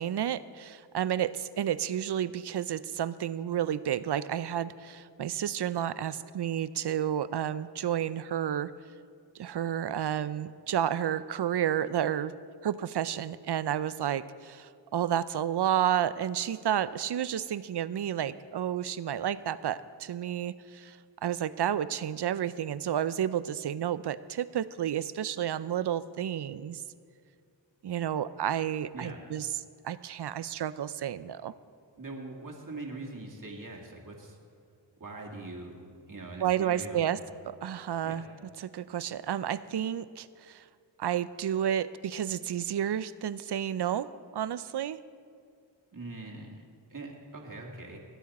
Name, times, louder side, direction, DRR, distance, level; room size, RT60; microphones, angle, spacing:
voice 1, 0.0-8.7 9.4-12.3 12.6-26.8 27.8-29.5 29.8-31.5 36.4-37.2 37.5-38.2 38.6-40.6 41.0-45.0, right 10 dB, 60° right, 16 dB, 0.6 m, -31 dB
voice 2, 32.0-34.4 35.0-37.2 38.0-38.3 45.9-46.6 46.9-48.0, right 2 dB, 40° right, -1 dB, 2.1 m, -42 dB
20.0 x 9.2 x 4.2 m, 2.2 s
cardioid pair, 45°, 46 cm